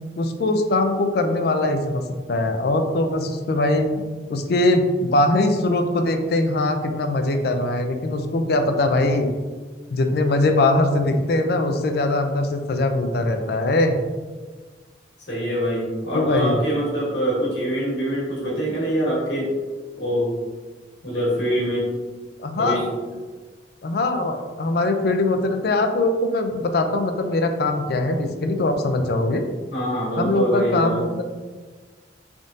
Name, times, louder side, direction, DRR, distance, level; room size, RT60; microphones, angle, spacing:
voice 1, 0.2-2.0 2.3-3.9 4.3-9.3 9.9-14.0 16.1-16.6 22.4-22.8 23.8-29.4 30.2-31.2, left 2 dB, 55° left, 6 dB, 0.4 m, -21 dB
voice 2, 15.3-19.5 20.0-20.3 21.0-21.9 22.6-23.0 29.7-31.0, equal, 75° left, -6 dB, 1.5 m, -24 dB
3.6 x 3.6 x 2.6 m, 1.4 s
head